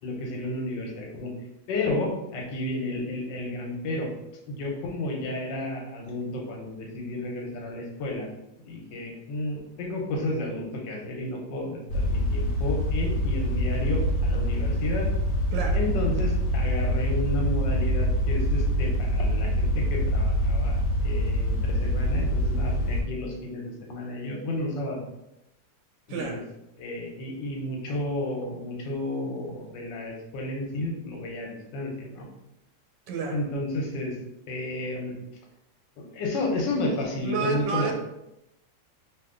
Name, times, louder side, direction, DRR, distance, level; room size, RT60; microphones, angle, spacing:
voice 1, 0.0-1.3 1.7-4.1 4.5-8.3 8.6-15.1 15.7-25.0 26.1-26.4 26.8-32.3 33.3-34.1 34.5-35.1 36.0-37.9, left 1 dB, 80° left, 0 dB, 1.4 m, -32 dB
sound 1, 11.9-23.0, equal, 65° left, 0.8 m, -25 dB
voice 2, 26.1-26.4 33.1-33.5 37.2-37.9, right 5 dB, 80° right, 3 dB, 1.2 m, -30 dB
2.9 x 2.9 x 3.6 m, 0.88 s
omnidirectional pair, 2.0 m